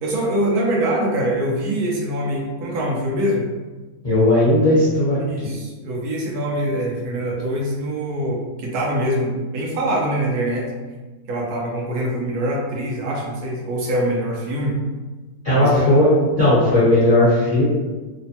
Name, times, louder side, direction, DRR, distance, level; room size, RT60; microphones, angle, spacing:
voice 1, 0.0-3.4 5.3-10.7 11.3-14.8 15.5-16.1, right 1 dB, 85° right, -2 dB, 1.2 m, -24 dB
voice 2, 4.0-5.2 15.4-16.1 16.4-17.6, left 1 dB, 30° left, -11 dB, 1.0 m, -16 dB
3.2 x 2.1 x 2.7 m, 1.3 s
omnidirectional pair, 1.6 m